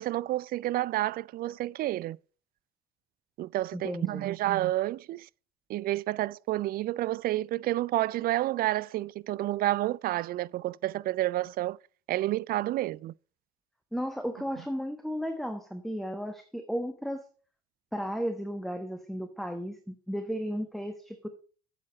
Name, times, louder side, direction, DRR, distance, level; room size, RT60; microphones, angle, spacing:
voice 1, 0.0-2.2 3.4-5.3 5.7-11.8 12.1-13.1, right 15 dB, 50° right, 0.4 m, -30 dB
voice 2, 3.7-4.3 13.9-17.2 17.9-21.3, equal, ahead, 1.2 m, -34 dB
8.3 x 6.6 x 6.1 m
hypercardioid pair, 60°, 20 cm